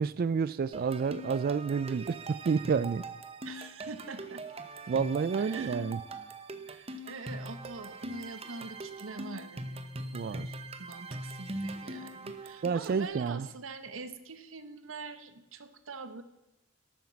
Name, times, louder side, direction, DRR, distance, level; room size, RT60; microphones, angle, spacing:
voice 1, 0.0-3.0 4.9-6.0 10.1-10.5 12.6-13.5, right 5 dB, 50° right, 17 dB, 0.3 m, -29 dB
sound 1, 0.7-13.0, right 2 dB, 30° right, 0.9 m, -42 dB
voice 2, 3.4-4.4 5.4-5.9 6.7-10.5 10.8-16.2, right 4 dB, 85° right, 11 dB, 1.0 m, -44 dB
12.0 x 9.0 x 7.1 m, 0.96 s
head